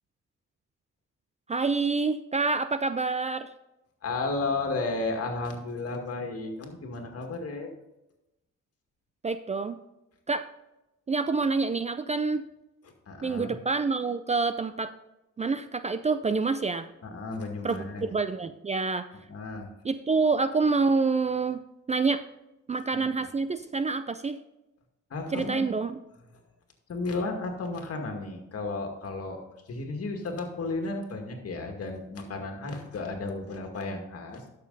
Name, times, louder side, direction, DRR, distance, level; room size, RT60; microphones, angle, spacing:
voice 1, 1.5-3.5 9.2-9.8 10.3-10.5 11.1-12.5 13.2-14.9 15.4-16.9 17.6-19.1 19.8-21.6 21.9-22.2 22.7-24.4 25.3-26.0, right 4 dB, 25° right, 11 dB, 0.4 m, -27 dB
voice 2, 4.0-7.7 13.1-13.6 17.0-18.0 19.3-19.7 22.9-23.1 25.1-25.7 26.9-29.4 29.7-34.4, left 3 dB, 50° left, 3 dB, 2.1 m, -33 dB
12.0 x 6.7 x 4.0 m, 0.93 s
cardioid pair, 90°, 30 cm